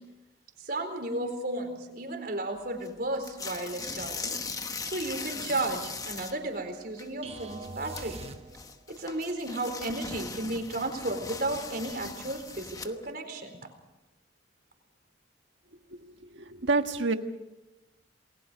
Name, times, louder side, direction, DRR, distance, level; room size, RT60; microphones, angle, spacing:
voice 1, 0.6-4.4 4.8-8.2 8.9-13.5, right 2 dB, 55° right, 5 dB, 4.2 m, -33 dB
sound 1, 2.8-2.9 3.2-6.5 6.7-7.1 7.4-13.1, left 4 dB, 20° left, 1.0 m, -39 dB
sound 2, 7.2-9.0, right 3 dB, 35° right, 1.1 m, -43 dB
voice 2, 16.3-17.1, right 3 dB, 75° right, 7 dB, 1.5 m, -27 dB
28.5 x 20.5 x 5.2 m, 1.0 s
head